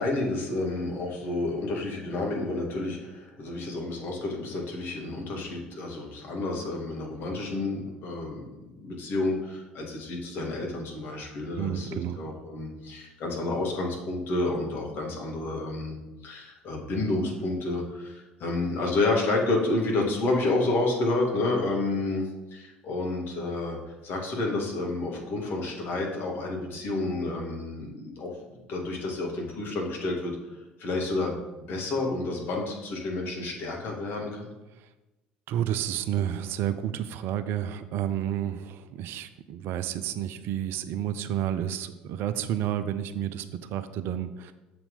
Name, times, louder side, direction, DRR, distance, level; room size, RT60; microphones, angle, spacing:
voice 1, 0.0-8.5 8.7-15.9 16.2-23.8 24.0-28.3 28.7-30.4 30.8-34.5, left 2 dB, 45° left, 0 dB, 1.8 m, -30 dB
voice 2, 11.5-12.2 34.8-34.9 35.5-44.5, right 10 dB, 50° right, 11 dB, 0.4 m, -30 dB
6.9 x 4.3 x 5.3 m, 1.1 s
figure-of-eight pair, 60°, 5 cm